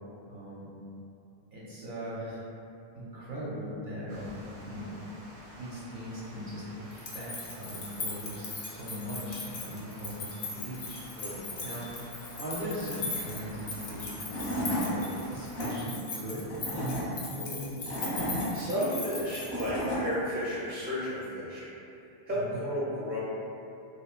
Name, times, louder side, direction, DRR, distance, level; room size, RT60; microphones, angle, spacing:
voice 1, 0.3-0.7 1.5-2.4 2.9-5.0 5.6-11.0 11.6-11.8 12.3-15.0 15.3-17.9 22.3-22.6, equal, 60° right, -8 dB, 0.6 m, -39 dB
Water, 4.1-15.8, right 1 dB, 90° right, 0.9 m, -49 dB
sound 1, 6.9-20.0, left 3 dB, 60° left, 0.4 m, -39 dB
Tools / Wood, 13.9-14.0 14.3-14.9 15.3-15.7 16.4-17.0 17.6-18.5 19.2-20.0, equal, 25° left, 0.7 m, -33 dB
voice 2, 18.5-22.0 22.3-23.2, equal, 15° right, -8 dB, 0.3 m, -33 dB
3.0 x 2.2 x 2.3 m, 2.7 s
omnidirectional pair, 1.1 m